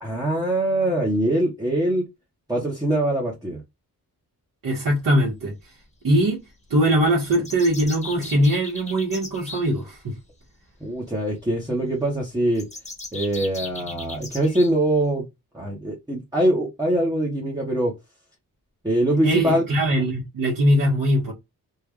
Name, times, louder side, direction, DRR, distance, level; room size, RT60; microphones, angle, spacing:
voice 1, 0.0-2.0 2.5-3.6 10.8-12.7 13.1-15.2 15.5-17.9 18.8-19.6, right 1 dB, 10° right, 1.1 m, -23 dB
voice 2, 4.6-5.5 6.0-6.4 6.7-10.1 19.2-21.3, right 1 dB, 65° right, 1.8 m, -21 dB
sound 1, 7.3-9.7 12.6-14.7, left 2 dB, 20° left, 1.2 m, -37 dB
3.7 x 2.5 x 3.1 m
wide cardioid pair, 135°, 35 cm